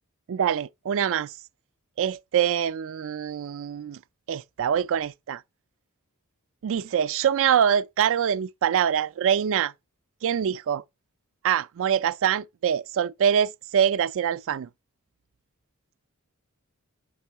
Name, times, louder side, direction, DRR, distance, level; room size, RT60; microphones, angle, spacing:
voice 1, 0.3-1.3 2.0-4.0 4.3-5.4 6.6-9.7 10.2-10.8 11.4-14.7, right 8 dB, 65° right, 0.3 m, -24 dB
5.4 x 3.5 x 5.5 m
head